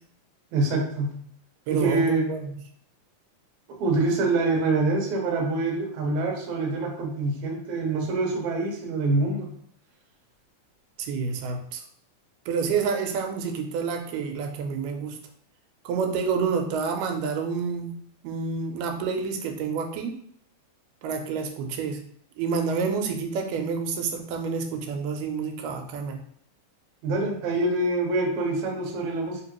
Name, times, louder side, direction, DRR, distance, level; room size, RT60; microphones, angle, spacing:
voice 1, 0.5-1.1 1.7-2.3 3.7-9.5 27.0-29.4, right 2 dB, 65° right, -1 dB, 1.5 m, -25 dB
voice 2, 1.7-2.4 11.0-11.8 12.5-15.2 15.9-17.9 18.2-20.2 21.0-22.0 22.4-26.2, right 5 dB, 85° right, 4 dB, 2.2 m, -28 dB
4.7 x 2.9 x 2.9 m, 0.66 s
omnidirectional pair, 3.7 m